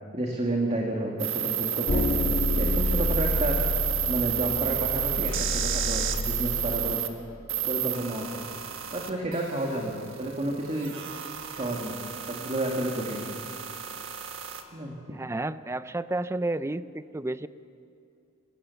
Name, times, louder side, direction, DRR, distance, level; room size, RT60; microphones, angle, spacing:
voice 1, 0.1-3.6 4.1-7.0 7.7-8.4 8.9-10.9 11.5-12.0 12.3-13.2 14.7-15.1, right 1 dB, 30° right, 0 dB, 2.0 m, -31 dB
sound 1, 1.2-7.1 7.5-14.6, right 10 dB, 65° right, 1.5 m, -31 dB
sound 2, 1.9-7.0, left 2 dB, 35° left, 0.6 m, -29 dB
voice 2, 15.1-17.5, right 2 dB, 15° right, 15 dB, 0.4 m, -31 dB
25.5 x 16.0 x 7.0 m, 2.6 s
head